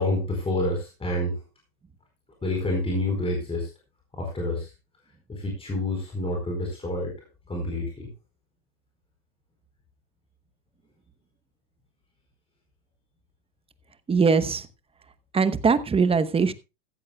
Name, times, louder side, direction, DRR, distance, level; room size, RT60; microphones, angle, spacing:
voice 1, 0.0-1.4 2.4-3.7 4.1-4.7 5.3-7.1 7.5-8.1, left 1 dB, 10° left, 1 dB, 4.5 m, -28 dB
voice 2, 14.1-14.6 15.3-16.5, right 5 dB, 10° right, 13 dB, 0.9 m, -21 dB
15.0 x 14.5 x 2.3 m, 0.27 s
supercardioid pair, 130°, 45 cm